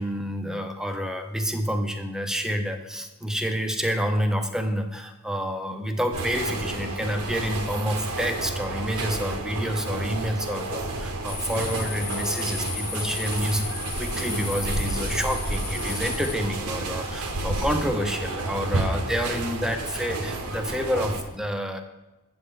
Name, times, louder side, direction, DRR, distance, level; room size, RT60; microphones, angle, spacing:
voice 1, 0.0-13.6 14.0-21.8, equal, 5° right, 5 dB, 0.6 m, -28 dB
sound 1, 6.1-21.2, right 2 dB, 85° right, 1.1 m, -30 dB
sound 2, 11.3-18.4, left 6 dB, 45° left, 0.9 m, -37 dB
8.2 x 7.7 x 3.7 m, 1.1 s
head